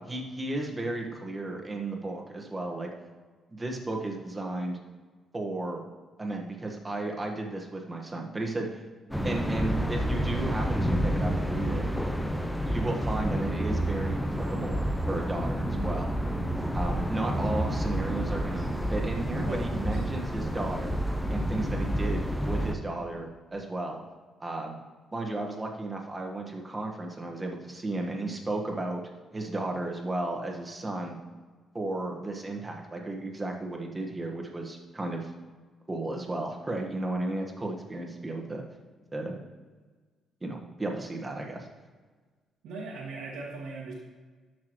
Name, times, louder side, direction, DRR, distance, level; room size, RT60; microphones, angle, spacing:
voice 1, 0.1-2.9 3.5-4.8 5.3-5.8 6.2-8.8 9.2-11.8 12.6-14.8 15.1-16.1 16.7-21.0 21.3-24.0 24.4-24.8 25.1-29.0 29.3-31.2 31.7-35.3 35.9-38.6 39.1-39.4 40.4-41.7, right 2 dB, 20° right, 1 dB, 1.5 m, -34 dB
sound 1, 9.1-22.7, equal, 5° left, 0.8 m, -29 dB
voice 2, 19.1-20.0 42.6-43.9, right 3 dB, 90° right, -6 dB, 1.8 m, -40 dB
12.5 x 6.1 x 3.1 m, 1.4 s
cardioid pair, 90°, 0 cm